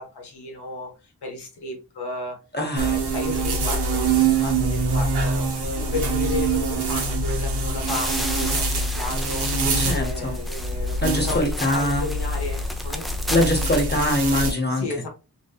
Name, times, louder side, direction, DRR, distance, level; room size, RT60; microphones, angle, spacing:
voice 1, 0.0-2.4 2.7-5.5 5.8-9.5 9.9-13.1 14.7-15.1, left 2 dB, 85° left, 0.9 m, -33 dB
voice 2, 2.5-2.9 9.8-10.4 11.0-12.0 13.3-14.8, left 1 dB, 25° left, 0.8 m, -23 dB
sound 1, 2.8-14.5, right 3 dB, 85° right, 0.8 m, -24 dB
sound 2, 7.9-13.9, equal, ahead, 0.4 m, -34 dB
2.8 x 2.2 x 2.3 m
cardioid pair, 45°, 38 cm